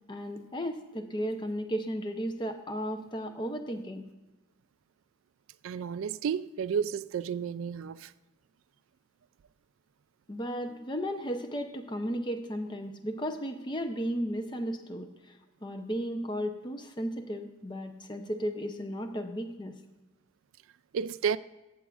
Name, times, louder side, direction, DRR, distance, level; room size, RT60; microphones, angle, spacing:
voice 1, 0.1-4.1 10.3-19.8, equal, 20° left, 0.7 m, -35 dB
voice 2, 5.6-8.1 20.9-21.4, right 7 dB, 75° right, 0.3 m, -31 dB
14.0 x 8.1 x 2.4 m
head